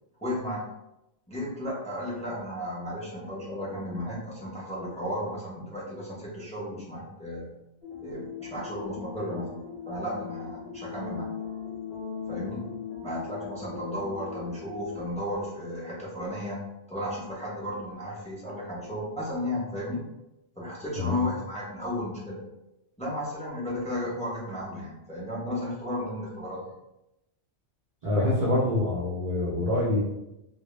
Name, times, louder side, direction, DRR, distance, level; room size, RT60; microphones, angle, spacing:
voice 1, 0.2-0.6 1.3-7.5 8.0-11.3 12.3-12.7 13.0-16.6 16.9-20.0 20.6-22.4 23.0-26.6, left 1 dB, 10° left, -6 dB, 0.5 m, -34 dB
sound 1, 7.8-15.0, left 7 dB, 55° left, 0.7 m, -39 dB
voice 2, 28.0-30.0, left 2 dB, 65° right, -5 dB, 0.4 m, -25 dB
2.1 x 2.0 x 3.0 m, 0.90 s
omnidirectional pair, 1.2 m